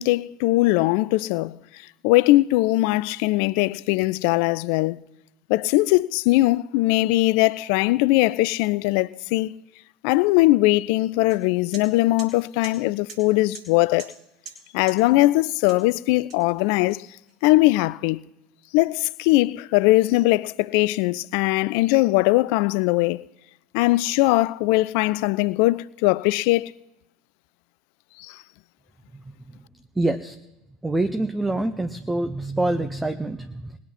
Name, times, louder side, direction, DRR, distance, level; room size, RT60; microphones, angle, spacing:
voice 1, 0.0-1.6 2.0-5.0 5.5-9.5 10.0-14.1 14.7-17.1 17.4-18.2 18.7-23.2 23.7-26.7 28.2-28.4, left 19 dB, 60° left, 0.4 m, -20 dB
sound 1, 11.3-11.4 11.7-11.9 12.2-12.3 12.6-12.8 13.1-13.2 13.5-13.7 14.0-14.2 14.5-14.6 14.9-15.0 15.7-15.9 16.3-17.3, right 7 dB, 50° right, 4.3 m, -41 dB
voice 2, 30.0-30.4 30.8-33.8, right 2 dB, 10° right, 0.8 m, -25 dB
20.5 x 9.4 x 4.3 m
figure-of-eight pair, 70°, 0 cm